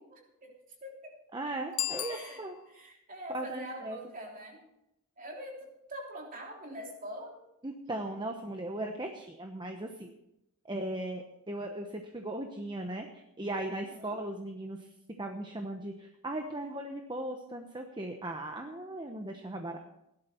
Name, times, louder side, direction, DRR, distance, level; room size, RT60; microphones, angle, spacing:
voice 1, 0.1-1.1 1.9-2.4 2.7-4.6 5.2-7.3 13.9-14.2, equal, 40° right, 0 dB, 3.4 m, -44 dB
voice 2, 1.3-2.5 3.3-4.0 7.6-10.1 10.6-14.9 15.2-19.8, right 1 dB, 20° right, 4 dB, 1.0 m, -38 dB
Bicycle bell, 1.7-2.9, left 16 dB, 80° left, 0.5 m, -37 dB
17.5 x 11.5 x 4.5 m, 0.84 s
head